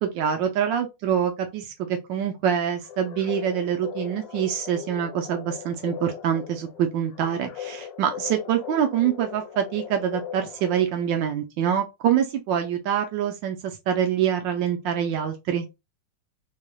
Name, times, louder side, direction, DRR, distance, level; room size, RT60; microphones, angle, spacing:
voice 1, 0.0-15.7, right 9 dB, 80° right, 1.3 m, -25 dB
sound 1, 2.8-11.2, left 9 dB, 80° left, 1.3 m, -39 dB
3.8 x 3.3 x 2.3 m
omnidirectional pair, 2.0 m